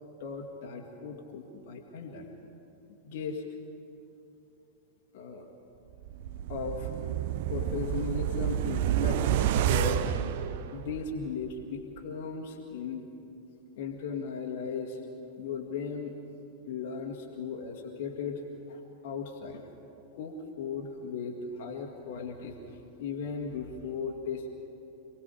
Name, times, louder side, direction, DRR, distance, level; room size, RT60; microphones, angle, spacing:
voice 1, 0.2-2.3 3.0-3.4 5.1-5.5 6.5-6.9 7.5-9.3 9.6-10.3 10.7-13.1 13.8-15.0 15.4-16.2 16.7-18.4 18.7-19.7 20.1-24.5, left 5 dB, 55° left, 1 dB, 1.9 m, -37 dB
sound 1, 6.0-11.3 11.6-11.7, right 11 dB, 50° right, 0.7 m, -29 dB
27.5 x 18.5 x 5.1 m, 2.8 s
figure-of-eight pair, 90°, 0 cm